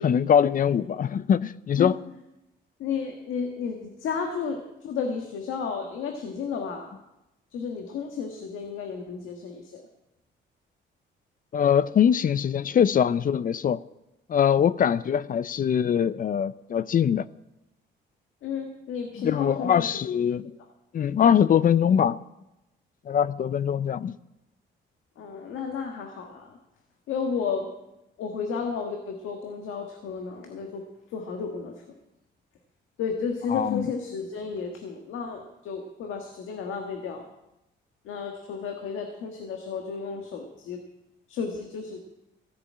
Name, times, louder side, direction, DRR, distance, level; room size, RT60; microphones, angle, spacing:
voice 1, 0.0-2.0 11.5-13.8 14.3-17.2 19.2-20.4 20.9-22.2 23.1-24.1 33.5-33.9, left 8 dB, 45° left, 0.5 m, -22 dB
voice 2, 2.8-6.9 7.5-9.9 18.4-20.1 25.2-26.6 27.1-27.7 28.2-30.8 31.1-31.8 33.0-37.3 38.0-40.8 41.3-42.0, left 5 dB, 85° left, 1.5 m, -32 dB
14.5 x 7.0 x 8.5 m
cardioid pair, 90°, 20 cm